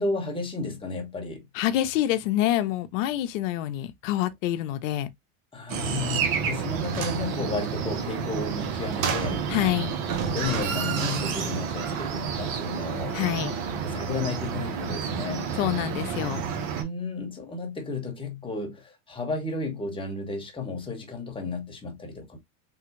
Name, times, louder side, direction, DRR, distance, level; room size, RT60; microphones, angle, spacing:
voice 1, 0.0-1.4 5.5-9.4 10.3-13.2 13.8-15.5 16.8-22.4, left 3 dB, 10° left, 1.2 m, -33 dB
voice 2, 1.5-5.1 9.5-10.0 13.1-13.6 15.5-16.4, left 13 dB, 65° left, 0.7 m, -26 dB
sound 1, 5.7-16.8, right 6 dB, 50° right, 1.0 m, -30 dB
sound 2, 6.8-7.3 8.9-9.7 10.0-12.3 12.6-12.7, right 6 dB, 75° right, 1.1 m, -32 dB
3.5 x 2.3 x 3.0 m
supercardioid pair, 110°, 41 cm